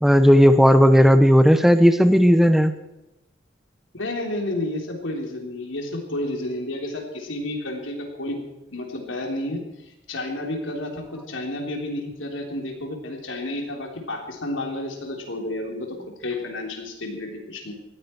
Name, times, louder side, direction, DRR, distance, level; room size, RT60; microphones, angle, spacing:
voice 1, 0.0-2.7, equal, ahead, 10 dB, 0.9 m, -14 dB
voice 2, 3.9-9.6 10.1-17.7, left 1 dB, 90° left, 2 dB, 3.6 m, -31 dB
19.0 x 15.5 x 4.6 m, 0.96 s
head